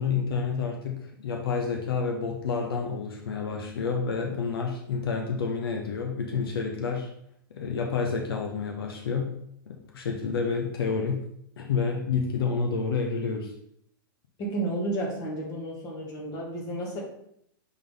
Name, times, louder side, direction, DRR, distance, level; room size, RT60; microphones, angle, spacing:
voice 1, 0.0-7.1 7.5-9.4 9.7-11.2 11.6-13.5, left 5 dB, 80° left, 2 dB, 1.0 m, -29 dB
voice 2, 14.4-17.0, right 1 dB, 30° left, -2 dB, 2.1 m, -32 dB
6.4 x 3.8 x 3.9 m, 0.71 s
hypercardioid pair, 135°, 12 cm